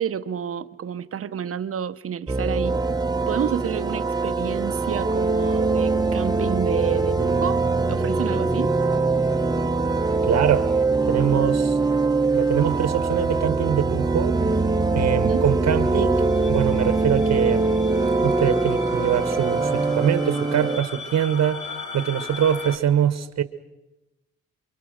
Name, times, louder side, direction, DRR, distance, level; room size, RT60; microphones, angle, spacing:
voice 1, 0.0-2.8 3.3-7.6 7.9-8.8 15.1-15.4, right 8 dB, 50° right, 1.0 m, -29 dB
sound 1, 2.3-20.8, right 3 dB, 15° right, 1.1 m, -22 dB
voice 2, 10.3-10.7 11.0-11.8 12.3-14.4 14.9-17.7 18.2-21.7 21.9-23.4, right 10 dB, 65° right, 1.4 m, -23 dB
sound 2, 16.1-22.8, left 4 dB, 80° left, 2.8 m, -38 dB
28.5 x 23.0 x 6.5 m
cardioid pair, 90°, 30 cm